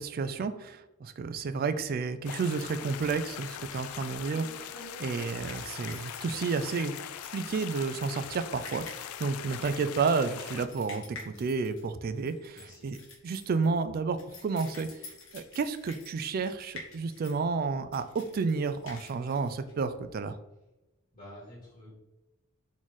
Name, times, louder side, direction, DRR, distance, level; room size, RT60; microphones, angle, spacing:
voice 1, 0.0-6.9 7.3-13.0 13.2-14.9 15.3-20.4, right 4 dB, 45° right, 11 dB, 0.3 m, -31 dB
sound 1, 2.3-10.7, left 10 dB, 85° left, 0.3 m, -41 dB
sound 2, 3.6-20.3, left 3 dB, 65° left, 1.1 m, -49 dB
voice 2, 12.5-12.9 21.1-21.9, left 1 dB, 35° left, -6 dB, 1.6 m, -49 dB
4.1 x 3.1 x 4.0 m, 1.0 s
head